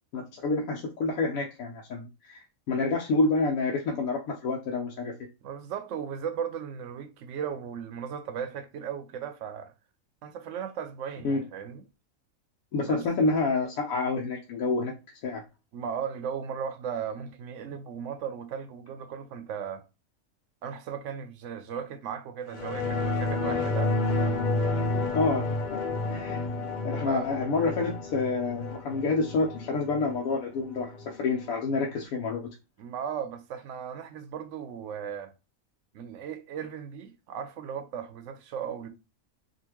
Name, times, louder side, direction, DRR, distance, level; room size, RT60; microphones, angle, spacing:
voice 1, 0.1-5.1 11.2-11.4 12.7-14.9 15.2-15.4 25.1-25.8 26.1-26.5 26.8-32.5, left 3 dB, 80° left, 1.1 m, -28 dB
voice 2, 5.4-9.7 10.2-11.8 12.8-13.0 15.7-19.8 20.6-24.4 27.1-27.3 32.8-35.3 35.9-38.9, right 7 dB, 70° right, 0.9 m, -36 dB
sound 1, 22.5-31.5 31.9-32.0, left 2 dB, 50° left, 0.5 m, -30 dB
3.7 x 2.5 x 2.9 m
omnidirectional pair, 1.4 m